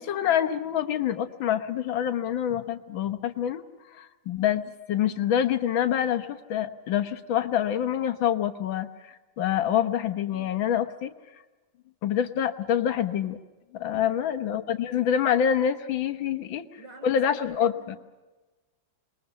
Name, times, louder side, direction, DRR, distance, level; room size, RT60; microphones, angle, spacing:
voice 1, 0.0-3.6 3.9-11.1 12.0-13.4 13.7-16.6 17.0-18.0, left 9 dB, 90° left, 10 dB, 1.9 m, -26 dB
voice 2, 16.4-18.0, right 3 dB, 65° right, 4 dB, 4.5 m, -48 dB
26.5 x 21.0 x 6.9 m, 1.2 s
omnidirectional pair, 2.1 m